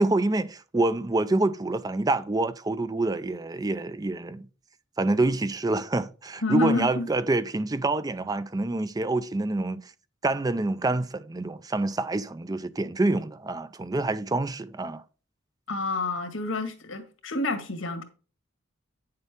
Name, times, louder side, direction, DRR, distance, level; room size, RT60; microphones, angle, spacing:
voice 1, 0.0-4.5 5.0-9.8 10.2-15.0, right 2 dB, 20° right, 0.4 m, -26 dB
voice 2, 6.4-7.1 15.7-18.0, left 2 dB, 85° left, 1.7 m, -28 dB
9.2 x 6.7 x 3.5 m
head